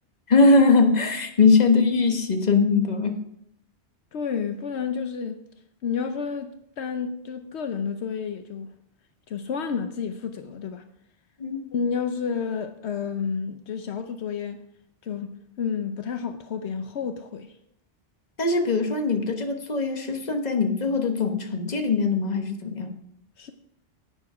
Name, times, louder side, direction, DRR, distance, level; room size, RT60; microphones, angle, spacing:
voice 1, 0.3-3.2 11.4-11.6 18.4-22.9, left 4 dB, 40° left, 1.3 m, -21 dB
voice 2, 4.1-5.4 5.8-8.7 9.3-10.8 11.7-14.6 15.0-17.5 23.4-23.5, left 6 dB, 75° left, 1.0 m, -30 dB
10.5 x 9.2 x 4.8 m
omnidirectional pair, 1.1 m